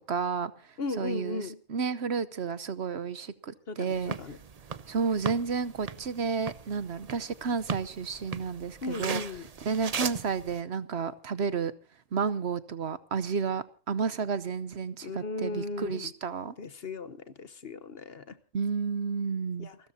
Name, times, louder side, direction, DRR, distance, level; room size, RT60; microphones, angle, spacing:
voice 1, 0.1-0.5 1.0-4.2 4.9-9.2 9.6-11.7 12.1-16.5 18.5-19.7, right 5 dB, 60° right, 1.1 m, -31 dB
voice 2, 0.8-1.6 3.7-4.4 8.8-9.5 15.0-16.1 16.6-18.4 19.6-19.8, left 3 dB, 50° left, 1.2 m, -36 dB
sound 1, 3.9-10.6, right 6 dB, 35° right, 0.7 m, -39 dB
28.5 x 13.0 x 2.7 m
omnidirectional pair, 1.3 m